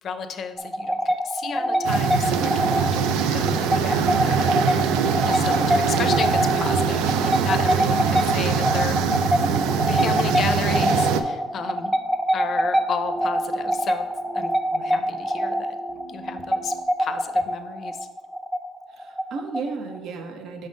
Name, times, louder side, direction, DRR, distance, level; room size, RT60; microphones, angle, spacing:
voice 1, 0.0-4.5 5.2-9.2 9.9-11.9 12.3-14.0 14.3-14.5 14.8-15.8 16.1-18.1, left 6 dB, 50° left, 9 dB, 0.5 m, -33 dB
sound 1, 0.6-20.0, equal, 5° right, 0.4 m, -25 dB
sound 2, 1.8-11.2, right 7 dB, 90° right, 0.4 m, -23 dB
voice 2, 5.3-5.9 7.9-8.4 9.1-9.7 14.7-15.2 18.9-20.7, right 4 dB, 65° right, 5 dB, 0.8 m, -35 dB
sound 3, 11.4-16.8, right 4 dB, 35° right, 0.8 m, -42 dB
5.4 x 3.7 x 5.2 m, 1.2 s
cardioid pair, 110°, 0 cm